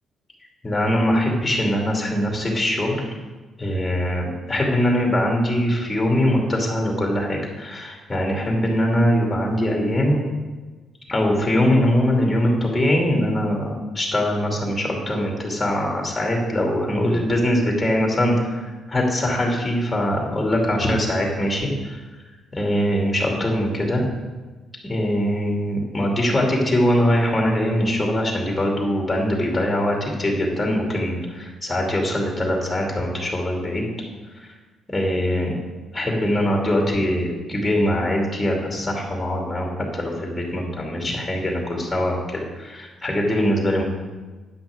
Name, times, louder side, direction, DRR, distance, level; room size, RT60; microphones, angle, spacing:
voice 1, 0.6-3.0 3.6-10.2 11.1-22.0 22.5-24.1 24.8-33.9 34.9-35.5 35.9-43.8, equal, 15° left, -1 dB, 2.5 m, -22 dB
9.6 x 6.1 x 6.4 m, 1.3 s
cardioid pair, 90°, 0 cm